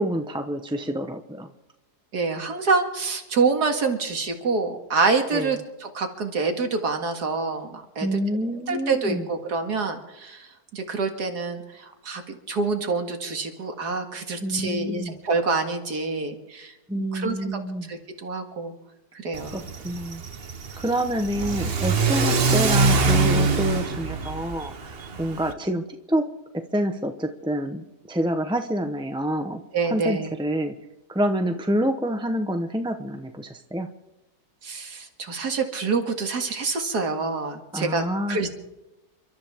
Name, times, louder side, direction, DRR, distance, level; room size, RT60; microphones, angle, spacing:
voice 1, 0.0-1.5 5.3-5.5 8.0-9.2 14.4-15.1 16.9-17.8 19.5-20.2 20.8-26.3 26.5-29.6 29.9-30.7 31.1-33.9 37.7-38.5, equal, 5° right, 5 dB, 0.6 m, -27 dB
voice 2, 2.1-8.2 8.7-12.2 12.5-17.6 17.9-18.7 19.2-19.6 20.7-20.8 29.7-30.3 34.6-38.5, right 4 dB, 80° right, 4 dB, 2.4 m, -27 dB
Car / Accelerating revving vroom, 19.3-25.5, right 4 dB, 40° right, 1.2 m, -24 dB
30.0 x 13.5 x 3.6 m, 0.98 s
omnidirectional pair, 1.7 m